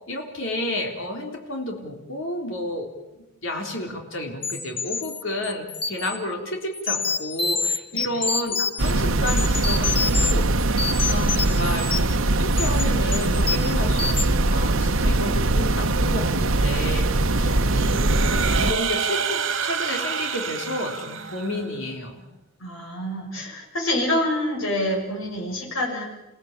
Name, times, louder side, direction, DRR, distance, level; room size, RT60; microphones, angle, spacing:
voice 1, 0.1-2.9 3.4-18.2 18.6-22.2, left 1 dB, 70° left, 2 dB, 3.8 m, -31 dB
sound 1, 4.4-6.2 6.7-8.9 9.3-10.3 10.6-12.2 12.5-12.8 13.1-13.7 14.0-14.3, left 5 dB, 25° left, 1.7 m, -27 dB
sound 2, 8.8-18.7, right 2 dB, 90° right, 1.1 m, -21 dB
voice 2, 17.4-17.7 22.6-26.1, left 1 dB, 90° left, -1 dB, 6.8 m, -27 dB
sound 3, 17.7-21.7, right 6 dB, 65° right, 2.7 m, -28 dB
29.5 x 17.0 x 9.1 m, 1.0 s
head